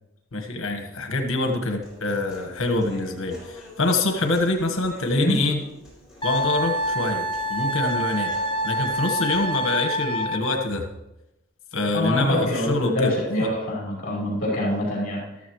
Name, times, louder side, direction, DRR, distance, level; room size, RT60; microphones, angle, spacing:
voice 1, 0.3-5.6 6.2-8.3 8.6-10.8 11.7-13.5, left 2 dB, 70° left, 5 dB, 1.5 m, -25 dB
Human voice, 1.8-9.8, left 1 dB, ahead, 5.4 m, -46 dB
Wind instrument woodwind instrument, 6.2-10.7, equal, 25° left, 0.6 m, -26 dB
voice 2, 11.9-15.2, left 1 dB, 40° left, -4 dB, 5.0 m, -25 dB
13.5 x 13.0 x 3.1 m, 0.94 s
head